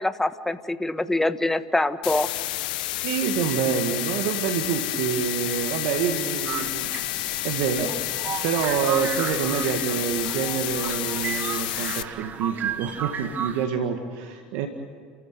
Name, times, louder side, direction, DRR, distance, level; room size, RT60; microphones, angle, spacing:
voice 1, 0.0-2.3, left 2 dB, 10° left, 11 dB, 1.3 m, -24 dB
sound 1, 2.0-12.0, left 16 dB, 75° left, 0.9 m, -30 dB
voice 2, 3.0-8.0 8.3-14.7, right 8 dB, 70° right, 5 dB, 1.9 m, -27 dB
Trumpet, 3.2-11.7, left 12 dB, 60° left, 2.6 m, -42 dB
sound 2, 6.5-13.7, right 7 dB, 40° right, 2.0 m, -34 dB
30.0 x 15.0 x 9.2 m, 2.1 s
hypercardioid pair, 85°, 5 cm